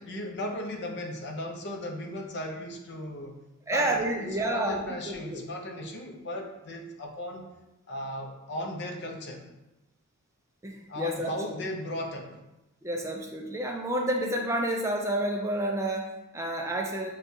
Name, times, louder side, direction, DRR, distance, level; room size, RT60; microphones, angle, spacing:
voice 1, 0.0-3.4 3.7-7.5 7.9-9.4 10.9-12.4, left 1 dB, 55° left, 2 dB, 0.6 m, -36 dB
voice 2, 3.7-5.4 10.6-11.3 12.8-17.1, right 1 dB, 15° right, 1 dB, 0.3 m, -30 dB
6.6 x 2.3 x 2.7 m, 1.0 s
head